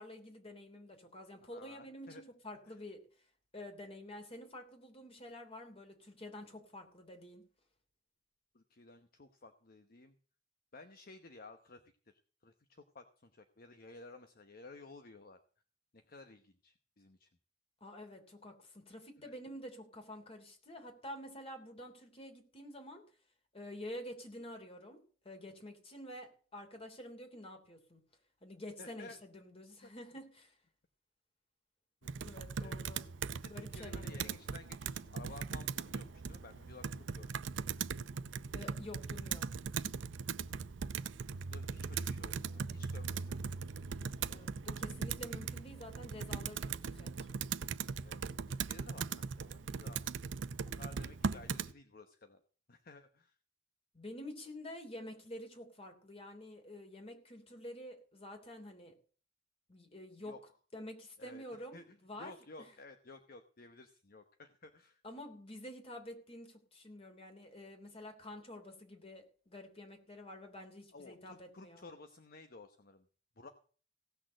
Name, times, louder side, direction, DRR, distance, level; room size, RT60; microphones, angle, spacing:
voice 1, 0.0-3.0 3.5-7.4 17.8-23.0 23.5-28.0 28.4-30.6 32.2-33.1 33.5-34.4 38.5-39.5 44.2-47.3 53.9-58.9 59.7-60.4 60.7-62.3 65.0-71.9, left 1 dB, 35° left, 5 dB, 3.1 m, -49 dB
voice 2, 1.4-2.2 2.7-2.8 8.5-10.1 10.7-15.4 15.9-17.3 19.2-19.3 28.8-29.2 29.8-29.9 32.0-32.1 32.6-32.7 33.4-37.4 41.5-43.5 48.0-48.2 48.5-50.0 50.7-52.4 52.7-53.4 60.2-60.4 61.2-61.4 61.7-65.0 70.9-73.1 73.4-73.5, left 3 dB, 55° left, 8 dB, 1.0 m, -55 dB
Computer keyboard, 32.0-51.7, right 5 dB, 90° right, 0.6 m, -40 dB
17.0 x 6.4 x 7.6 m, 0.42 s
head